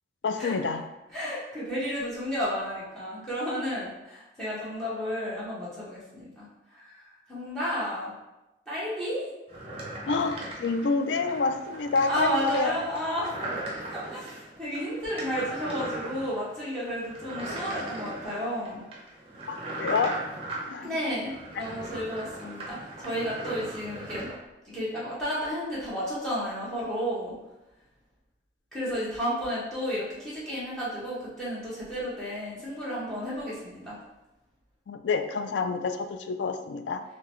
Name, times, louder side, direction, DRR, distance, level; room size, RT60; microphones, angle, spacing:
voice 1, 0.2-0.8 10.1-12.7 19.5-20.1 20.7-20.9 34.9-37.0, left 4 dB, 85° left, 8 dB, 0.4 m, -28 dB
voice 2, 1.1-8.1 8.7-9.3 12.1-13.3 13.9-18.8 20.8-24.3 24.6-27.3 28.7-34.0, equal, 5° left, -10 dB, 1.2 m, -32 dB
sound 1, 9.5-24.3, right 1 dB, 30° right, 0.8 m, -38 dB
3.8 x 3.2 x 3.1 m, 0.98 s
head